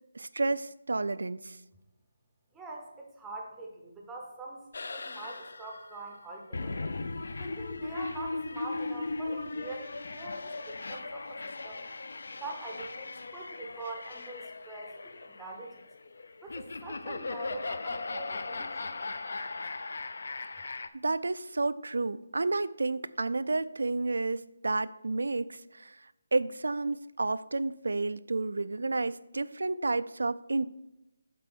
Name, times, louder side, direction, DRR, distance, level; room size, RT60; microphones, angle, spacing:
voice 1, 0.1-1.6 21.0-30.7, right 3 dB, 85° right, 16 dB, 0.4 m, -31 dB
voice 2, 2.5-6.9 7.4-11.8 12.3-15.8 16.4-18.9, right 2 dB, 5° right, -1 dB, 0.6 m, -44 dB
sound 1, 4.7-20.9, left 3 dB, 60° left, 0.5 m, -38 dB
7.5 x 4.5 x 6.0 m, 0.93 s
hypercardioid pair, 175°, 0 cm